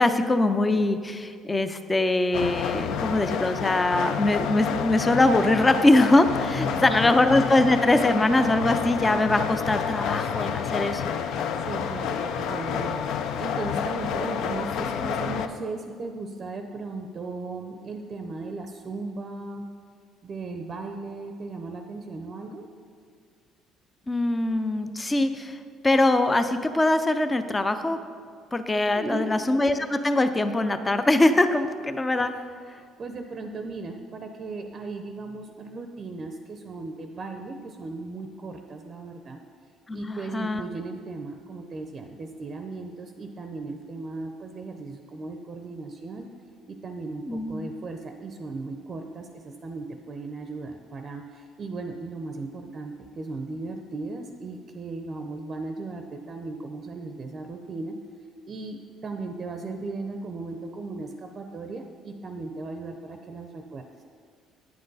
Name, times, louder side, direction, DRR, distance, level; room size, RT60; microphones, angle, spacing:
voice 1, 0.0-11.1 24.1-25.6 25.8-28.0 28.5-32.3 39.9-40.6 47.3-47.7, left 2 dB, 15° left, 10 dB, 0.4 m, -22 dB
sound 1, 2.3-15.5, left 7 dB, 70° left, 0.4 m, -29 dB
voice 2, 6.6-7.2 11.7-19.7 20.2-22.6 28.9-29.4 32.7-39.4 39.9-46.2 46.7-58.0 58.5-64.0, right 3 dB, 35° right, 5 dB, 0.5 m, -37 dB
9.4 x 7.7 x 4.0 m, 2.1 s
cardioid pair, 135°, 0 cm